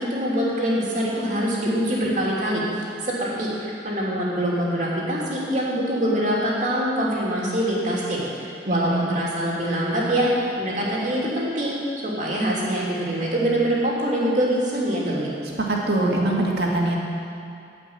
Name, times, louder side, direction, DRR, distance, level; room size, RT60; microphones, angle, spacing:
voice 1, 0.0-2.6 3.0-11.8 12.0-15.4, equal, 40° right, -5 dB, 2.8 m, -24 dB
voice 2, 8.7-9.1 15.6-17.0, right 2 dB, 60° right, -3 dB, 2.2 m, -23 dB
15.0 x 5.9 x 8.8 m, 2.5 s
head